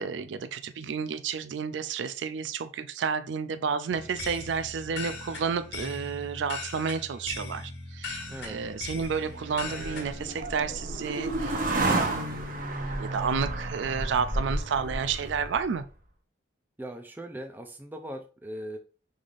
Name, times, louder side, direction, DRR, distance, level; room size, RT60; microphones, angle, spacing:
voice 1, 0.0-15.8, right 6 dB, 75° right, 11 dB, 0.4 m, -31 dB
sound 1, 3.9-10.4, left 3 dB, 70° left, 1.1 m, -39 dB
voice 2, 8.3-8.6 16.8-18.8, right 1 dB, 10° right, 4 dB, 0.5 m, -39 dB
sound 2, 8.4-15.8, right 2 dB, 45° right, 0.8 m, -32 dB
5.5 x 3.3 x 2.5 m, 0.35 s
head